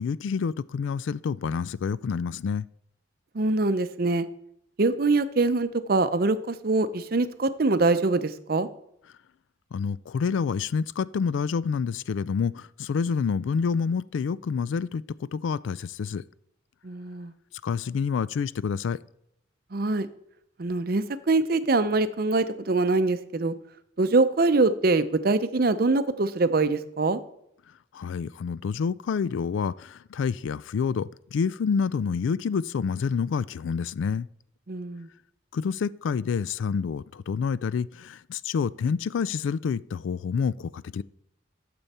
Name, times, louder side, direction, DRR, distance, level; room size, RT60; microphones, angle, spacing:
voice 1, 0.0-2.7 9.7-16.2 17.6-19.0 27.9-34.3 35.5-41.0, left 6 dB, 80° left, 0.3 m, -28 dB
voice 2, 3.3-4.3 4.8-8.7 16.8-17.3 19.7-20.1 20.6-23.5 24.0-27.2 34.7-35.1, right 3 dB, 50° right, 0.6 m, -24 dB
12.5 x 7.0 x 4.2 m
head